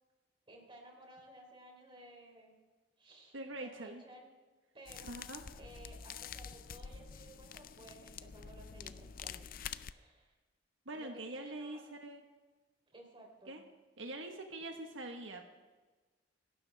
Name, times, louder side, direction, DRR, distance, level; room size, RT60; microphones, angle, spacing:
voice 1, 0.5-2.5 3.0-4.3 4.7-5.2 5.6-9.5 9.9-10.3 10.9-11.8 12.9-13.6, right 1 dB, 30° right, 1 dB, 3.6 m, -56 dB
voice 2, 3.3-4.0 5.0-5.4 10.8-12.2 13.5-13.6 14.0-15.4, right 2 dB, 85° right, 4 dB, 1.4 m, -44 dB
sound 1, 4.9-9.9, left 7 dB, 50° left, 0.5 m, -47 dB
26.5 x 12.5 x 3.5 m, 1.3 s
head